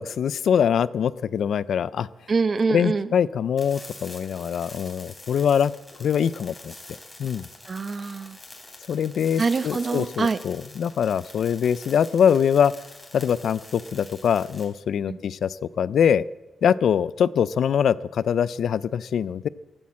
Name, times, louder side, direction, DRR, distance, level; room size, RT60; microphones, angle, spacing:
voice 1, 0.0-2.1 2.7-5.7 6.0-6.7 7.2-7.5 8.9-12.7 13.1-16.2 16.6-19.5, left 8 dB, 70° left, 19 dB, 0.4 m, -23 dB
voice 2, 2.3-3.1 7.7-8.4 9.4-10.4 15.1-15.2, right 4 dB, 35° right, 14 dB, 0.7 m, -25 dB
sound 1, 3.6-14.6, left 2 dB, 15° left, 3.2 m, -45 dB
14.0 x 12.0 x 7.4 m, 1.1 s
wide cardioid pair, 145°, 0 cm